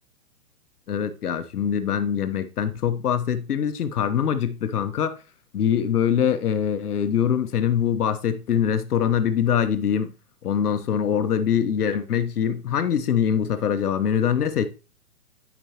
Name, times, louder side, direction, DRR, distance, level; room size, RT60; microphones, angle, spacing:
voice 1, 0.9-5.2 5.5-10.1 10.4-14.7, left 8 dB, 80° left, 1.0 m, -23 dB
9.4 x 5.3 x 2.8 m
hypercardioid pair, 130°, 45 cm